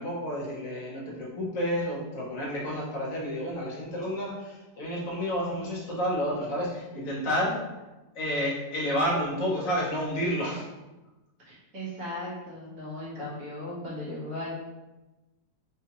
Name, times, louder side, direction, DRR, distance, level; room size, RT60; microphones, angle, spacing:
voice 1, 0.0-7.6 8.1-10.7, equal, 60° left, -4 dB, 1.0 m, -30 dB
voice 2, 11.5-14.5, left 1 dB, 55° right, -7 dB, 1.6 m, -37 dB
3.6 x 2.7 x 2.8 m, 1.1 s
omnidirectional pair, 1.9 m